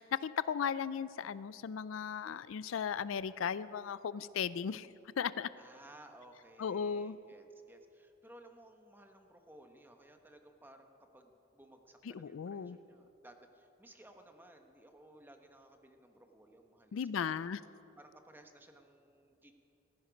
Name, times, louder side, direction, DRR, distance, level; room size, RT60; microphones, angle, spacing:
voice 1, 0.0-4.9 5.2-5.5 6.6-7.2 12.1-12.8 16.9-17.6, left 7 dB, 75° left, 17 dB, 0.4 m, -36 dB
voice 2, 5.6-17.5 18.0-19.5, right 1 dB, 10° right, 5 dB, 1.1 m, -58 dB
17.0 x 14.5 x 5.2 m, 2.8 s
head